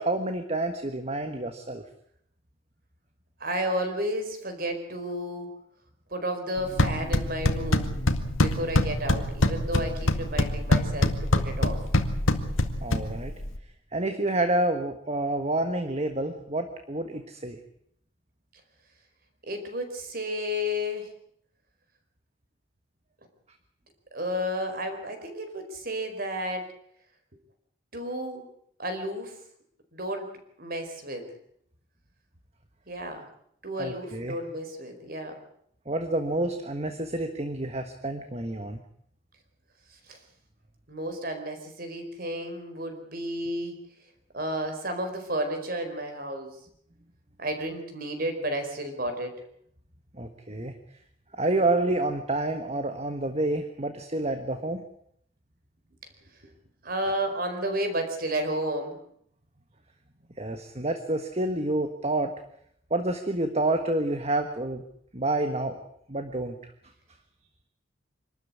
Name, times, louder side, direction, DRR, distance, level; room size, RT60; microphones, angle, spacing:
voice 1, 0.0-1.8 12.8-13.3 13.9-17.6 33.8-34.4 35.9-38.8 50.2-50.7 51.4-54.8 60.4-62.3 62.9-64.8 65.1-65.8 66.1-66.6, right 2 dB, 30° right, 6 dB, 1.5 m, -28 dB
voice 2, 3.4-5.5 6.1-8.0 8.4-11.8 19.4-21.1 24.1-26.7 27.9-28.5 28.8-29.4 29.9-30.3 30.6-31.3 32.9-33.2 33.6-35.4 39.9-40.2 40.9-43.8 44.3-46.6 47.4-49.3 56.8-59.0, equal, 45° right, 7 dB, 4.6 m, -32 dB
sound 1, 6.6-13.6, left 1 dB, 85° left, 2.0 m, -25 dB
25.5 x 13.0 x 9.8 m, 0.70 s
head